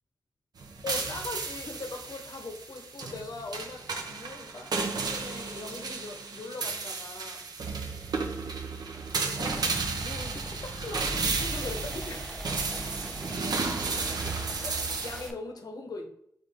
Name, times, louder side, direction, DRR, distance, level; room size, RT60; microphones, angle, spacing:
sound 1, 0.6-15.3, right 4 dB, 75° right, 0.6 m, -33 dB
voice 1, 0.8-7.5 9.3-12.6 14.6-16.1, left 3 dB, 70° left, 3 dB, 0.9 m, -41 dB
sound 2, 9.8-15.3, equal, 5° left, 0.5 m, -46 dB
4.8 x 2.6 x 3.5 m, 0.69 s
wide cardioid pair, 75°, 7 cm